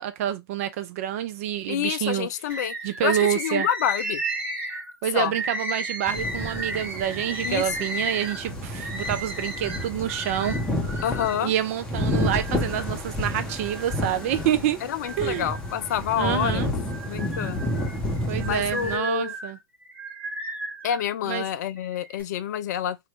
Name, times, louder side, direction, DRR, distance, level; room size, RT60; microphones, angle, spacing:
voice 1, 0.0-2.3 2.8-3.7 5.0-10.6 11.4-14.8 15.2-15.5 16.2-16.7 18.3-19.6 21.3-21.4, right 11 dB, 40° right, 0.3 m, -27 dB
voice 2, 1.7-2.7 3.0-4.2 5.1-5.3 7.4-7.7 11.0-11.5 14.8-16.7 17.0-17.7 18.4-19.4 20.8-23.0, left 10 dB, 45° left, 0.4 m, -28 dB
Bird, 2.5-11.4 11.9-12.9 13.5-14.5 14.9-16.3 16.8-21.1 21.8-22.2, right 1 dB, 15° right, 1.1 m, -34 dB
sound 1, 6.1-19.0, left 1 dB, 5° left, 0.8 m, -30 dB
2.9 x 2.4 x 3.0 m
figure-of-eight pair, 115°, 12 cm